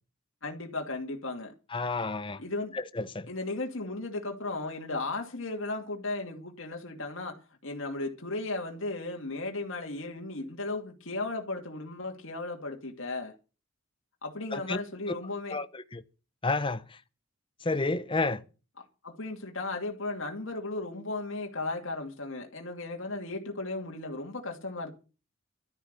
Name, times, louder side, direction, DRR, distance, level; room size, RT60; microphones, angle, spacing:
voice 1, 0.4-1.5 2.4-2.8 3.3-13.3 14.2-15.6 19.0-24.9, left 2 dB, 65° left, 2.5 m, -35 dB
voice 2, 1.7-2.4 2.7-3.3 14.5-14.8 15.5-16.0 16.4-16.8 17.6-18.4, left 3 dB, 25° left, 0.8 m, -30 dB
12.5 x 11.5 x 6.8 m
head